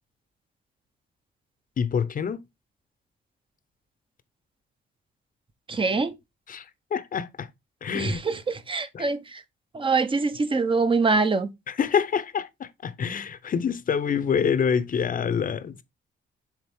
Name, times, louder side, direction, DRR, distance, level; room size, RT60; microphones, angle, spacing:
voice 1, 1.8-2.4 6.5-6.6 6.9-7.5 7.8-8.2 8.9-9.1 11.7-15.8, left 7 dB, 45° left, 0.8 m, -26 dB
voice 2, 5.7-6.1 7.9-9.4 9.7-11.5, right 4 dB, 25° right, 0.9 m, -24 dB
7.4 x 3.6 x 3.6 m
cardioid pair, 90°, 20 cm